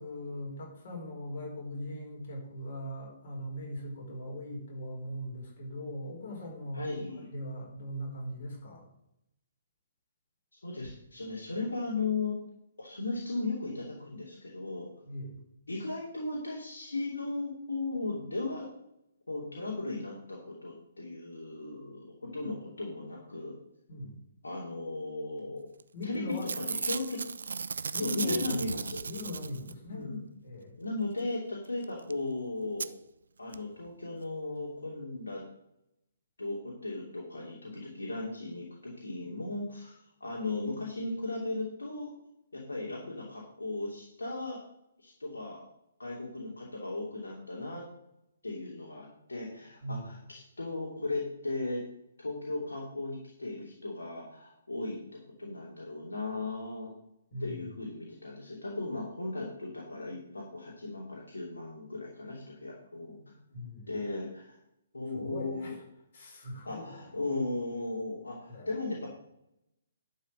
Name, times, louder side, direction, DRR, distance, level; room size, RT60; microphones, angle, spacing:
voice 1, 0.0-6.9 7.2-8.9 15.0-15.4 23.9-24.2 25.9-26.5 27.9-28.7 29.1-30.1 30.4-30.8 49.8-50.1 57.3-57.7 63.5-63.9 65.1-65.8 66.1-67.1 68.5-69.0, left 1 dB, 45° left, -2 dB, 4.9 m, -40 dB
voice 2, 6.7-7.3 10.6-12.4 12.8-14.9 15.7-18.7 19.3-23.6 24.4-25.6 26.0-26.2 26.5-27.2 27.9-29.0 29.9-30.2 30.8-33.0 33.4-35.4 36.4-39.9 40.2-42.1 42.5-44.6 45.0-45.6 46.0-47.9 48.4-51.8 52.2-55.0 55.4-56.9 57.4-63.3 63.9-64.6 64.9-65.7 66.6-69.1, left 2 dB, 70° left, -3 dB, 2.9 m, -36 dB
Packing tape duct tape / Tearing, 25.8-26.0 26.3-29.9 31.8-31.9 32.1-32.2 32.8-32.9 33.5-33.6 33.8-33.9, right 5 dB, 60° right, 0.5 m, -36 dB
11.5 x 5.7 x 6.5 m, 0.80 s
figure-of-eight pair, 130°, 0 cm